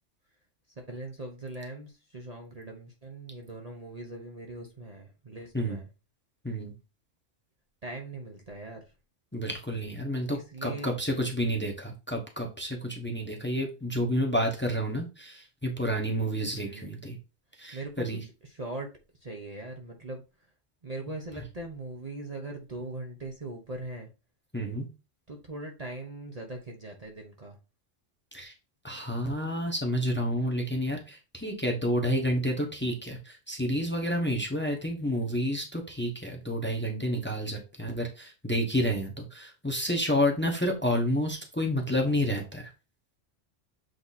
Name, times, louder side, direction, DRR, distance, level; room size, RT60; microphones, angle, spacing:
voice 1, 0.7-5.9 7.8-8.9 10.3-10.9 16.5-17.0 17.7-18.1 18.4-18.9 19.2-20.5 20.8-24.1 25.3-27.6, right 2 dB, 35° right, 1.0 m, -40 dB
voice 2, 9.3-17.2 17.6-18.2 24.5-24.9 28.3-28.5 28.8-42.7, equal, 10° left, 1.1 m, -30 dB
7.8 x 3.0 x 4.2 m
omnidirectional pair, 1.3 m